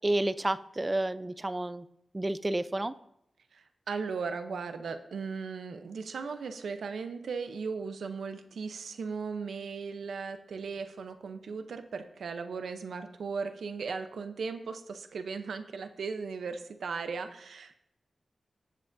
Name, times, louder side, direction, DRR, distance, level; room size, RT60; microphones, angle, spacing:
voice 1, 0.0-1.8 2.1-2.9, right 1 dB, 25° right, 15 dB, 0.5 m, -30 dB
voice 2, 3.5-17.8, right 5 dB, 90° right, 8 dB, 0.7 m, -37 dB
17.0 x 7.6 x 2.6 m, 0.78 s
cardioid pair, 55°, 0 cm